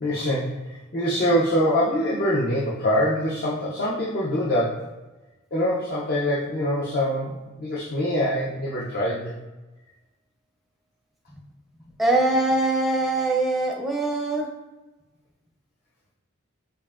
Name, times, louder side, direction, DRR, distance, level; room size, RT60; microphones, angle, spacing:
voice 1, 0.0-4.9 5.5-9.3, equal, 45° left, -6 dB, 0.5 m, -24 dB
voice 2, 12.0-14.5, right 2 dB, ahead, -1 dB, 0.5 m, -22 dB
5.3 x 2.5 x 2.4 m, 1.1 s
head